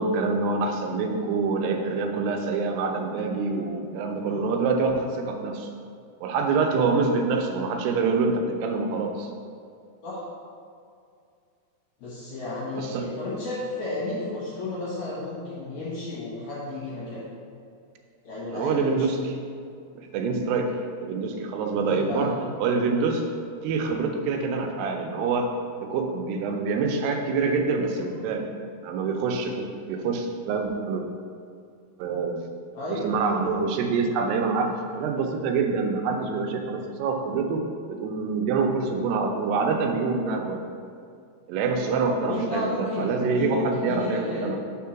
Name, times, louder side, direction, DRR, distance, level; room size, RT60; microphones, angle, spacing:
voice 1, 0.0-5.7 6.2-9.3 12.8-13.1 18.5-19.3 20.0-22.3 22.6-23.2 23.6-25.5 25.8-28.5 28.8-31.1 32.0-32.4 32.9-40.6 41.5-44.6, right 4 dB, 85° right, 3 dB, 2.7 m, -26 dB
voice 2, 4.2-4.5 10.0-10.3 12.0-17.3 18.2-19.1 21.7-22.3 28.0-28.2 32.7-33.1 41.8-44.6, left 2 dB, 60° left, -8 dB, 2.0 m, -32 dB
5.1 x 4.6 x 5.7 m, 2.3 s
omnidirectional pair, 4.7 m